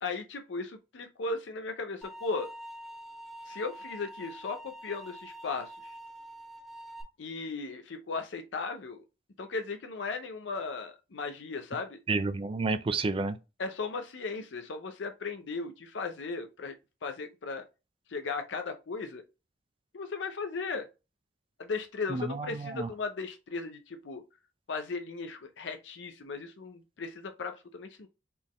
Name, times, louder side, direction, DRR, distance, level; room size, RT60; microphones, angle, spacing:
voice 1, 0.0-2.5 3.5-5.9 7.2-9.0 9.4-12.0 13.6-16.7 17.0-17.6 18.1-19.2 19.9-20.9 21.6-24.2 24.7-28.1, left 4 dB, 80° left, 0.6 m, -36 dB
sound 1, 2.0-7.0, right 1 dB, ahead, 1.2 m, -46 dB
voice 2, 12.1-13.4 22.1-22.9, right 3 dB, 30° right, 0.4 m, -30 dB
4.2 x 3.7 x 3.0 m
head